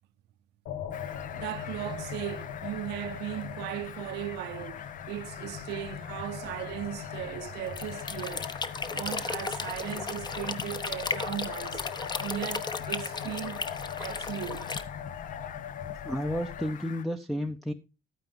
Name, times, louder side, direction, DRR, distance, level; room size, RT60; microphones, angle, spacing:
sound 1, 0.7-16.7, left 8 dB, 75° left, 1.2 m, -40 dB
Fowl, 0.9-17.0, left 9 dB, 50° left, 0.7 m, -45 dB
voice 1, 1.0-13.6 14.0-14.7, right 14 dB, 90° right, 0.8 m, -38 dB
sound 2, 7.7-14.8, left 4 dB, 25° left, 0.9 m, -35 dB
voice 2, 16.0-17.7, equal, ahead, 0.6 m, -31 dB
13.0 x 9.4 x 3.6 m
cardioid pair, 110°, 17 cm